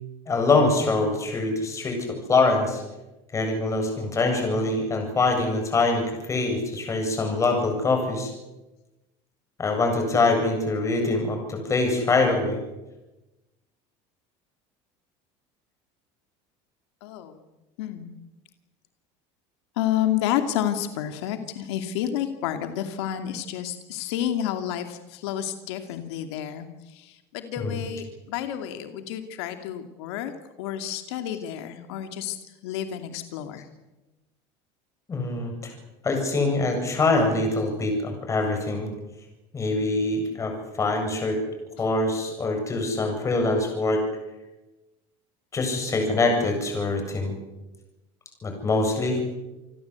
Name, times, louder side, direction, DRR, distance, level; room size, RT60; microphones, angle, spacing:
voice 1, 0.3-2.8 3.3-8.3 9.6-12.6 27.6-27.7 35.1-35.7 36.0-38.9 39.5-41.4 41.8-44.0 45.5-47.3 48.4-49.2, left 3 dB, 20° left, 4 dB, 7.8 m, -24 dB
voice 2, 17.0-17.4 17.8-18.1 19.8-30.3 30.6-32.4 32.6-33.7, left 11 dB, 90° left, 7 dB, 2.6 m, -30 dB
29.0 x 20.5 x 8.3 m, 1.1 s
cardioid pair, 145°, 14 cm